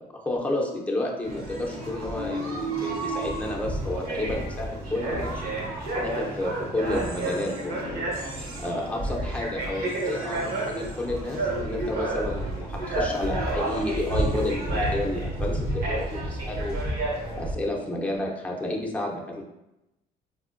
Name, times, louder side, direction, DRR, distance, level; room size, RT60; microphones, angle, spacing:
voice 1, 0.0-5.4 6.0-8.1 8.6-16.8 17.4-19.4, left 1 dB, 10° left, -1 dB, 0.6 m, -31 dB
sound 1, 1.2-17.5, right 1 dB, 70° right, 0.9 m, -30 dB
4.1 x 2.7 x 2.5 m, 0.91 s
cardioid pair, 110°, 17 cm